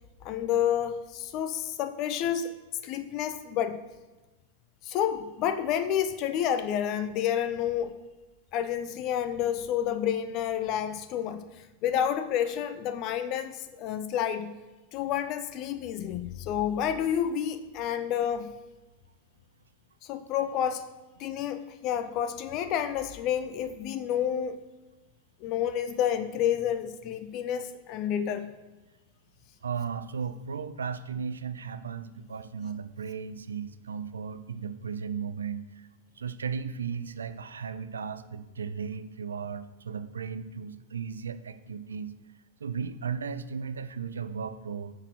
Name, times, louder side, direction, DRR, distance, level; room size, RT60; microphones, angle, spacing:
voice 1, 0.2-2.5 2.8-3.8 4.8-8.0 8.5-14.5 14.9-18.5 20.0-20.9 21.2-24.6 25.4-28.5, left 9 dB, 40° left, 12 dB, 0.7 m, -29 dB
voice 2, 29.6-35.6 36.2-42.1 42.6-44.9, right 6 dB, 70° right, 12 dB, 0.6 m, -35 dB
9.4 x 6.7 x 6.3 m, 1.2 s
figure-of-eight pair, 90°, 0 cm